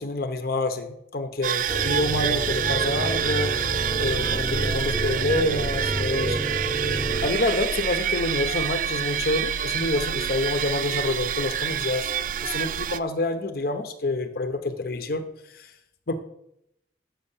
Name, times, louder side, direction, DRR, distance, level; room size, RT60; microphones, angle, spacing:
voice 1, 0.0-3.6 4.0-6.4 6.9-12.1 12.4-15.2 15.5-15.7 16.1-16.2, left 2 dB, 50° left, 8 dB, 0.8 m, -27 dB
sound 1, 1.4-13.0, right 8 dB, 45° right, 0.3 m, -27 dB
sound 2, 1.7-7.3, right 1 dB, 30° left, 1.1 m, -29 dB
7.7 x 6.5 x 7.1 m, 0.78 s
head